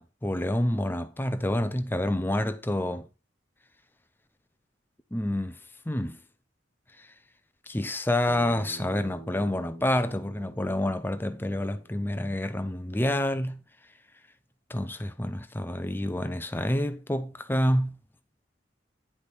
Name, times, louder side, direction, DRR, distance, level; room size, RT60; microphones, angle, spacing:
voice 1, 0.0-3.1 5.1-5.5 5.9-6.2 7.7-13.6 14.7-18.0, left 1 dB, 10° left, 0.7 m, -28 dB
Bass guitar, 8.3-12.6, right 2 dB, 40° right, 2.0 m, -48 dB
10.0 x 5.2 x 4.3 m
head